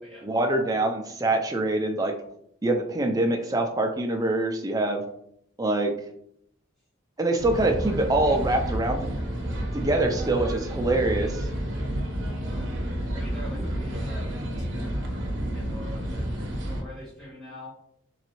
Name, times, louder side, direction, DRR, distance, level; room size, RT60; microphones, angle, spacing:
voice 1, 0.2-2.1 2.6-5.0 5.6-5.9 7.2-9.1 9.7-11.5, right 2 dB, 15° right, 3 dB, 0.4 m, -24 dB
sound 1, 7.4-16.8, equal, 60° right, 0.8 m, -30 dB
voice 2, 13.1-14.3 14.8-16.3 16.6-17.7, left 1 dB, ahead, -9 dB, 1.5 m, -44 dB
3.9 x 3.1 x 3.0 m, 0.71 s
head